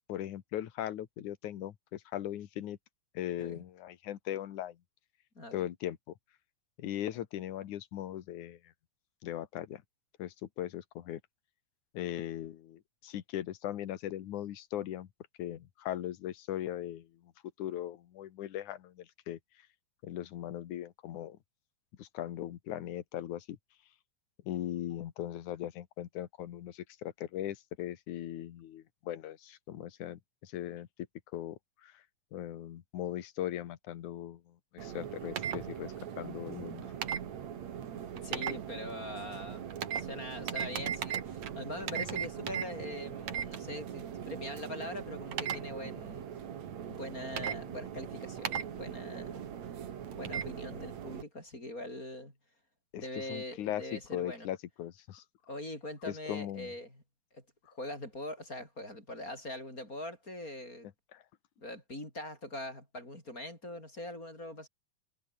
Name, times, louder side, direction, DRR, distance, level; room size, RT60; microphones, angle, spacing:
voice 1, 0.1-2.8 3.1-4.8 5.5-6.1 6.8-8.7 9.2-9.8 10.2-11.2 11.9-15.1 15.4-17.3 17.6-19.4 20.0-21.4 22.0-23.6 24.4-30.9 31.3-32.0 32.3-36.9 52.9-55.2 56.1-56.7 61.1-61.2, left 12 dB, 80° left, 2.9 m, -39 dB
voice 2, 5.3-5.7 38.2-46.3 46.9-49.5 50.1-52.3 52.9-54.5 55.5-57.0 57.3-57.4 57.7-60.9 61.6-64.7, left 1 dB, 25° left, 8.4 m, -42 dB
sound 1, 34.8-51.2, right 9 dB, 65° right, 3.2 m, -39 dB
omnidirectional pair, 3.5 m